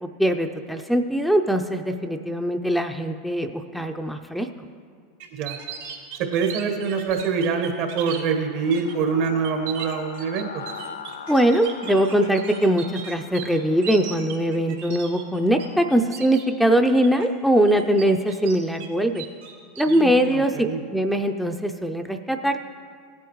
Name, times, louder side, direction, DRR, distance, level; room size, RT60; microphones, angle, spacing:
voice 1, 0.0-4.5 11.3-19.2 19.8-20.5 20.9-22.6, right 1 dB, ahead, 5 dB, 0.5 m, -21 dB
sound 1, 5.2-8.2 8.7-8.9 9.2-15.6 15.9-16.4 16.8-17.3 17.7-18.9 19.1-20.2, right 9 dB, 80° right, 3.1 m, -37 dB
voice 2, 6.2-10.6 19.9-20.8, right 5 dB, 60° right, 5 dB, 1.5 m, -25 dB
sound 2, 7.1-16.0, left 5 dB, 90° left, 0.5 m, -42 dB
17.0 x 8.4 x 3.1 m, 2.1 s
hypercardioid pair, 100°, 0 cm